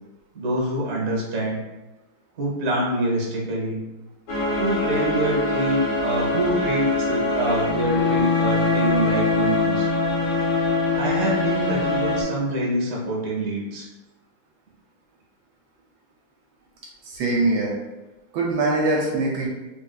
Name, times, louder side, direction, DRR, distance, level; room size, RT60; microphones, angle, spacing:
voice 1, 0.3-1.6 2.4-3.8 4.6-9.9 10.9-13.9, right 1 dB, 50° right, -3 dB, 1.0 m, -25 dB
sound 1, 4.3-12.2, left 3 dB, 85° left, 0.6 m, -23 dB
voice 2, 17.1-17.7 18.3-19.5, right 2 dB, 80° right, -2 dB, 1.3 m, -22 dB
3.5 x 2.6 x 2.2 m, 1.1 s
omnidirectional pair, 2.3 m